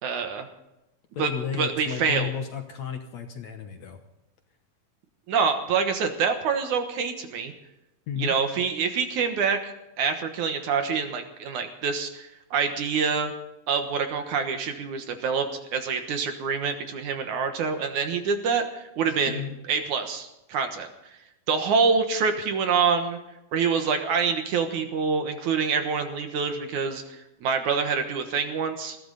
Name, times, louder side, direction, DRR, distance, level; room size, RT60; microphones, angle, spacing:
voice 1, 0.0-0.5 1.2-2.3 5.3-7.5 8.2-9.7 10.0-13.3 13.7-19.4 19.7-21.2 21.5-23.2 23.5-29.0, right 5 dB, 65° right, 6 dB, 2.5 m, -26 dB
voice 2, 1.1-4.0 8.1-8.4 19.3-19.6, left 8 dB, 65° left, 5 dB, 2.0 m, -33 dB
20.5 x 15.0 x 4.0 m, 0.93 s
omnidirectional pair, 4.2 m